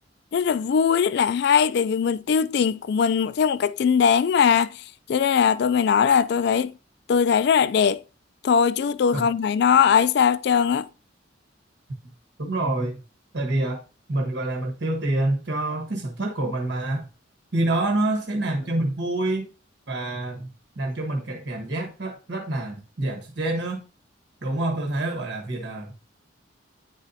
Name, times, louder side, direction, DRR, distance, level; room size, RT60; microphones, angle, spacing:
voice 1, 0.3-4.7 5.1-6.7 7.1-8.0 8.4-10.9, left 7 dB, 60° left, 0.3 m, -20 dB
voice 2, 12.4-13.0 13.3-13.8 14.1-17.1 17.5-19.5 19.9-20.5 20.8-23.8 24.4-25.9, right 2 dB, 70° right, 1.2 m, -27 dB
9.6 x 4.1 x 2.6 m
head